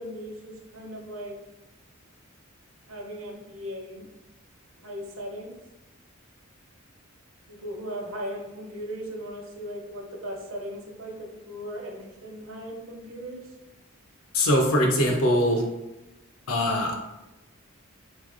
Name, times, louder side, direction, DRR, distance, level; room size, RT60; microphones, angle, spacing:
voice 1, 0.0-1.4 2.9-4.1 4.8-5.5 7.5-13.4, equal, 65° right, 1 dB, 0.8 m, -37 dB
voice 2, 14.3-15.6 16.5-17.0, left 1 dB, 80° left, 2 dB, 0.7 m, -22 dB
3.9 x 3.2 x 2.5 m, 1.0 s
head